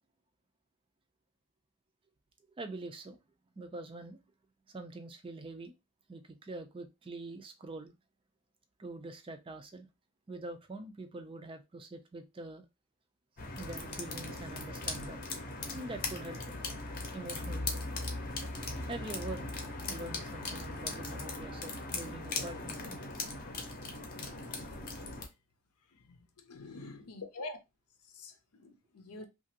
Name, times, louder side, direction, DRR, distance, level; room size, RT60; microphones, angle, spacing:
voice 1, 2.6-3.2 3.6-4.2 4.7-5.7 6.1-7.9 8.8-9.9 10.3-12.6 13.6-15.2 15.7-16.5 17.1-17.9 18.8-19.6 19.9-23.0, right 2 dB, 25° right, 0.3 m, -44 dB
sound 1, 13.4-25.3, left 2 dB, 40° left, 0.7 m, -39 dB
voice 2, 25.9-27.6 28.0-29.3, left 3 dB, 85° left, 0.7 m, -46 dB
2.9 x 2.4 x 2.7 m
head